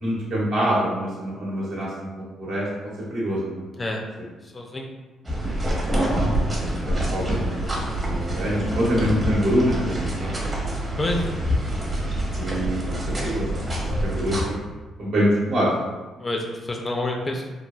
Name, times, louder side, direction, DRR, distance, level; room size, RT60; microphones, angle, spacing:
voice 1, 0.0-2.7 3.1-3.6 5.8-6.5 6.8-7.5 7.8-10.3 12.4-12.8 13.2-13.5 14.0-14.6 15.0-15.7, equal, 75° right, -7 dB, 1.0 m, -25 dB
voice 2, 4.5-4.9 11.0-11.3 16.2-17.4, left 2 dB, 30° left, 1 dB, 0.3 m, -27 dB
sound 1, 5.3-14.4, right 1 dB, 30° right, 0.8 m, -26 dB
3.1 x 2.2 x 2.2 m, 1.2 s
cardioid pair, 90°, 0 cm